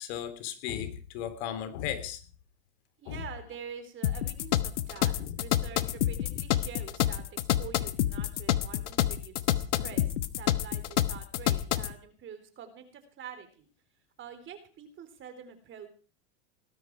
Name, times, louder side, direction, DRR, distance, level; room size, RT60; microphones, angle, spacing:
voice 1, 0.0-2.2 3.1-3.2 5.2-5.3 6.3-6.4, left 10 dB, 65° left, 10 dB, 3.4 m, -36 dB
voice 2, 3.0-10.1 10.3-13.7 14.2-15.9, right 7 dB, 35° right, 9 dB, 3.9 m, -46 dB
sound 1, 4.0-11.9, left 12 dB, 80° left, 1.3 m, -28 dB
19.0 x 12.5 x 4.8 m, 0.38 s
hypercardioid pair, 110°, 35 cm